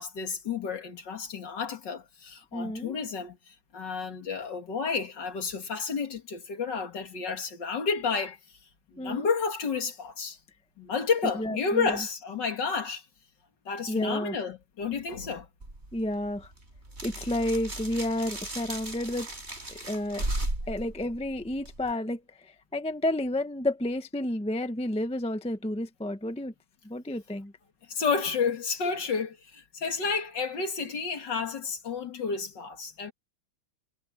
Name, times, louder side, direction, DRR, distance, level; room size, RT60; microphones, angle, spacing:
voice 1, 0.0-3.4 3.7-8.4 8.9-10.4 10.8-13.0 13.7-15.5 27.9-33.1, left 5 dB, 55° left, 2.7 m, -31 dB
voice 2, 2.5-2.9 9.0-9.3 11.4-12.0 13.9-14.4 15.9-16.5 17.0-19.3 19.7-20.3 20.7-22.2 22.7-26.5 26.8-27.5, left 1 dB, 5° left, 0.5 m, -31 dB
sound 1, 15.6-21.9, right 1 dB, 30° right, 6.4 m, -36 dB
omnidirectional pair, 2.3 m